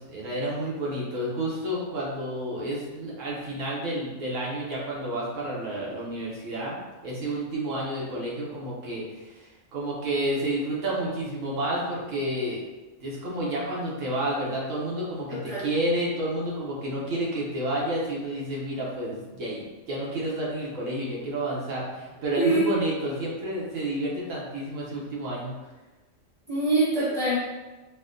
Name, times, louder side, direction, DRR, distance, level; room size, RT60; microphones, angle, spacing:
voice 1, 0.0-12.6 13.0-25.5, right 1 dB, 80° right, -5 dB, 1.2 m, -30 dB
voice 2, 15.3-15.7 22.4-22.6 26.5-27.4, right 2 dB, 5° left, -9 dB, 1.0 m, -24 dB
4.1 x 2.1 x 2.5 m, 1.1 s
omnidirectional pair, 1.3 m